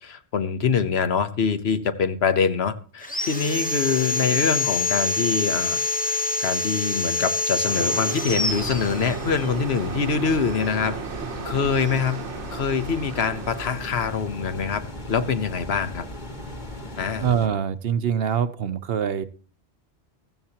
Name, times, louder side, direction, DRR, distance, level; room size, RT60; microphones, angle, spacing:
voice 1, 0.0-10.9 11.4-12.2 12.5-14.8 15.1-16.1 17.0-17.3, left 6 dB, 65° left, 1.2 m, -24 dB
Sawing, 3.0-9.5, left 3 dB, 10° left, 0.8 m, -26 dB
sound 1, 7.6-13.9, right 6 dB, 85° right, 1.3 m, -35 dB
sound 2, 8.5-17.5, left 1 dB, 40° left, 2.1 m, -37 dB
voice 2, 17.2-19.2, right 8 dB, 60° right, 1.0 m, -24 dB
15.0 x 14.5 x 2.9 m
omnidirectional pair, 1.1 m